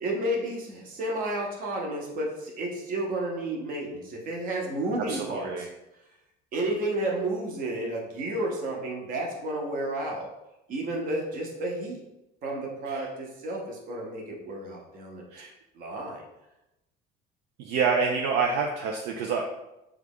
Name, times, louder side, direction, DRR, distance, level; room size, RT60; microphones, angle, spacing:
voice 1, 0.0-5.7 6.5-10.3 10.7-12.0 12.4-15.2 15.7-16.2, right 1 dB, 50° right, -1 dB, 0.9 m, -31 dB
voice 2, 5.1-5.7 12.9-13.1 15.3-15.5 17.6-19.6, right 5 dB, 70° right, 1 dB, 0.4 m, -27 dB
3.2 x 2.4 x 3.5 m, 0.91 s
cardioid pair, 125°, 18 cm